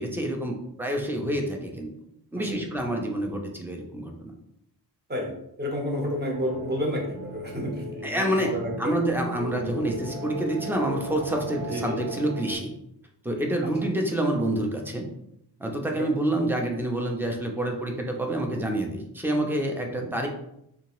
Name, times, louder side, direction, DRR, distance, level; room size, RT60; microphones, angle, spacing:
voice 1, 0.0-1.9 2.3-4.3 8.0-12.7 13.2-15.1 15.6-20.3, right 1 dB, 5° right, 2 dB, 0.4 m, -28 dB
voice 2, 2.4-2.7 5.1-5.3 5.6-9.0 11.7-12.0 16.0-16.1 19.9-20.1, equal, 25° right, -1 dB, 0.8 m, -30 dB
sound 1, 6.3-12.5, right 1 dB, 55° right, 1.4 m, -37 dB
3.5 x 2.8 x 3.0 m, 0.78 s
wide cardioid pair, 155°, 40 cm